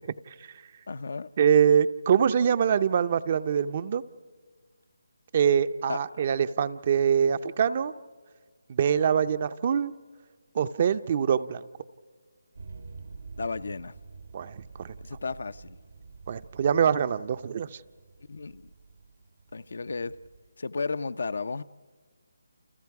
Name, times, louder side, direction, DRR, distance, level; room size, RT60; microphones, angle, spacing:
voice 1, 0.9-1.3 5.9-6.0 13.4-14.0 15.0-15.8 18.3-18.6 19.5-20.1 20.6-21.6, left 4 dB, 65° left, 0.6 m, -33 dB
voice 2, 1.4-4.0 5.3-7.9 8.7-9.9 10.5-11.7 14.3-14.9 16.3-17.8, right 8 dB, 35° right, 0.6 m, -24 dB
sound 1, 12.5-20.5, right 4 dB, 80° right, 1.6 m, -48 dB
29.5 x 29.5 x 4.8 m
figure-of-eight pair, 160°, 0 cm